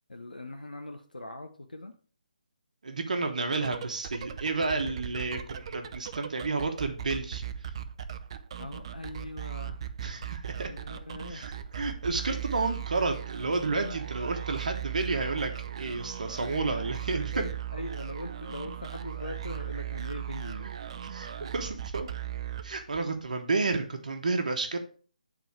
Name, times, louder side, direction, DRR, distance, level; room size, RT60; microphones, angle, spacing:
voice 1, 0.1-1.9 8.6-9.8 10.7-11.6 13.4-14.0 16.5-20.7 21.4-21.5, left 1 dB, 90° left, 6 dB, 0.8 m, -41 dB
voice 2, 2.8-7.4 10.0-10.7 11.3-15.5 15.8-17.3 21.1-22.1 22.6-24.8, right 3 dB, 65° right, 5 dB, 1.2 m, -31 dB
sound 1, 3.4-23.2, right 10 dB, 40° right, 0.6 m, -38 dB
9.2 x 3.9 x 4.7 m, 0.41 s
figure-of-eight pair, 150°, 4 cm